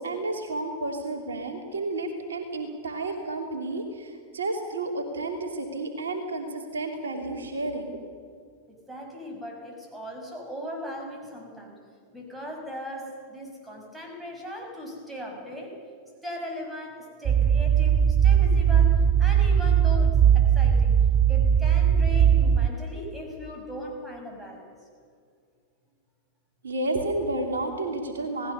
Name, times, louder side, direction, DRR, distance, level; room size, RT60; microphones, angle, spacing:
voice 1, 0.0-8.0 26.6-28.5, right 2 dB, 70° right, 3 dB, 2.9 m, -31 dB
voice 2, 8.7-11.8 12.1-15.7 16.2-21.0 21.3-24.7, equal, 5° right, 1 dB, 6.3 m, -38 dB
sound 1, 17.3-22.7, right 8 dB, 30° right, 0.6 m, -19 dB
28.5 x 18.5 x 6.8 m, 2.2 s
figure-of-eight pair, 90°, 0 cm